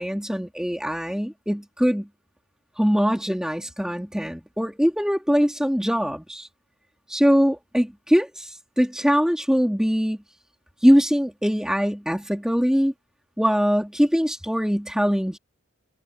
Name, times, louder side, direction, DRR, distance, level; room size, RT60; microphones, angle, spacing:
voice 1, 0.0-2.1 2.8-6.5 7.1-10.2 10.8-12.9 13.4-15.4, equal, 5° right, 2.4 m, -22 dB
head